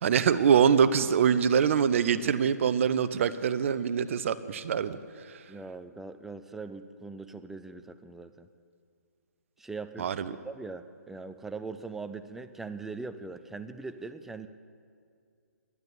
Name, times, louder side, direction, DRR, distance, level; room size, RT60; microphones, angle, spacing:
voice 1, 0.0-5.0 5.3-5.4 10.0-10.3, right 7 dB, 50° right, 14 dB, 0.6 m, -24 dB
voice 2, 5.5-8.5 9.6-10.1 10.4-14.5, right 4 dB, 5° right, 10 dB, 0.3 m, -41 dB
11.0 x 10.5 x 8.5 m, 2.3 s
figure-of-eight pair, 135°, 9 cm